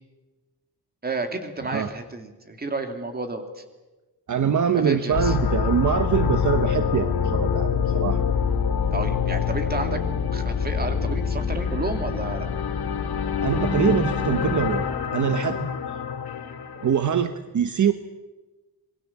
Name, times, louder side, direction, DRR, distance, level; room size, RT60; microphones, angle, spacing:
voice 1, 1.0-3.6 4.7-5.4 8.9-10.0 10.3-12.5, right 3 dB, 25° right, 6 dB, 2.7 m, -31 dB
voice 2, 4.3-8.2 13.4-15.7 16.8-17.9, right 8 dB, 55° right, 9 dB, 1.1 m, -24 dB
sound 1, 5.1-17.0, left 6 dB, 85° left, 2.3 m, -25 dB
27.0 x 22.0 x 7.3 m, 1.2 s
wide cardioid pair, 155°, 36 cm